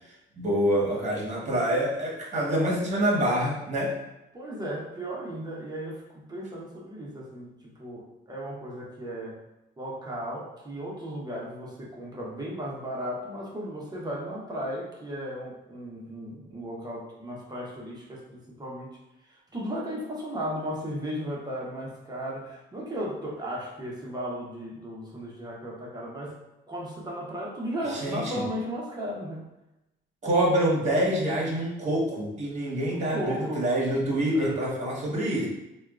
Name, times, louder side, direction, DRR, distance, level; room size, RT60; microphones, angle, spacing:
voice 1, 0.0-4.0 27.9-28.4 30.2-35.5, right 1 dB, 35° right, -4 dB, 1.2 m, -26 dB
voice 2, 4.3-9.4 9.8-26.4 26.7-29.5 32.9-33.7 34.3-34.9, equal, 20° right, -4 dB, 0.8 m, -35 dB
4.3 x 2.2 x 2.4 m, 0.95 s
cardioid pair, 90°, 20 cm